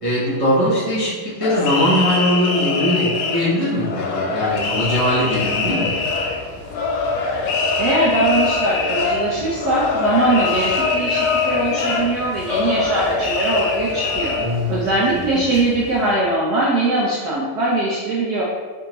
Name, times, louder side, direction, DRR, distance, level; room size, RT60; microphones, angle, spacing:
voice 1, 0.0-6.0 14.3-14.8 15.3-15.6, left 1 dB, 50° right, -10 dB, 0.4 m, -20 dB
sound 1, 1.4-14.5, left 4 dB, 90° left, 1.4 m, -23 dB
sound 2, 4.4-16.1, equal, 10° right, 1.0 m, -39 dB
voice 2, 7.8-14.3 14.7-18.4, right 2 dB, 65° right, -6 dB, 1.0 m, -21 dB
3.5 x 3.5 x 3.0 m, 1.5 s
omnidirectional pair, 2.2 m